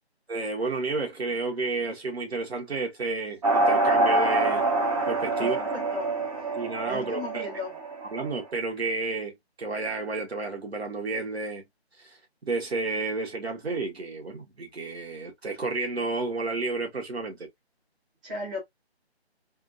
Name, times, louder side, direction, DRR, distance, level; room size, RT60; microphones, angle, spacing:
voice 1, 0.3-4.6 5.0-5.6 6.5-7.4 8.0-11.6 12.0-12.2 12.5-17.5, right 3 dB, 70° right, 1.4 m, -31 dB
sound 1, 3.4-8.4, right 2 dB, 35° right, 1.1 m, -26 dB
voice 2, 5.4-6.1 6.9-7.7 18.2-18.6, left 2 dB, 5° right, 0.7 m, -35 dB
3.5 x 2.6 x 2.5 m
figure-of-eight pair, 155°, 33 cm